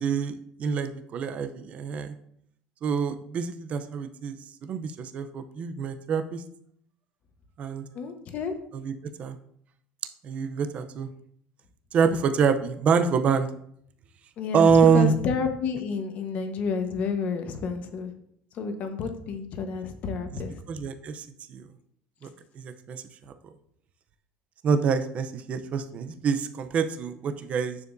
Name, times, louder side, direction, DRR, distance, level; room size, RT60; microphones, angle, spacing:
voice 1, 0.0-2.1 2.8-6.4 7.6-7.8 8.7-8.9 9.2-9.4 10.2-11.1 11.9-13.5 14.5-15.1 20.7-21.7 22.2-23.3 24.6-27.8, right 6 dB, 35° right, 9 dB, 0.6 m, -26 dB
voice 2, 7.9-8.6 14.4-18.1 18.5-20.6, left 5 dB, 45° left, 6 dB, 1.1 m, -30 dB
9.6 x 6.8 x 2.6 m, 0.68 s
cardioid pair, 155°, 4 cm